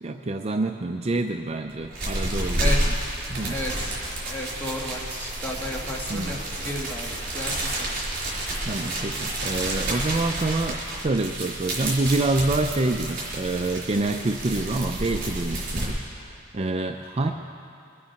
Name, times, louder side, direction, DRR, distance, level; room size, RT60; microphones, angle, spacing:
voice 1, 0.0-2.7 3.3-3.6 6.1-6.4 8.7-10.8 11.0-17.3, right 2 dB, 30° right, 4 dB, 0.4 m, -27 dB
sound 1, 1.7-15.9, right 1 dB, 45° right, 4.3 m, -30 dB
voice 2, 2.6-2.9 3.5-3.9 4.2-7.9, left 1 dB, 10° left, -2 dB, 1.6 m, -33 dB
23.0 x 8.6 x 5.8 m, 2.4 s
head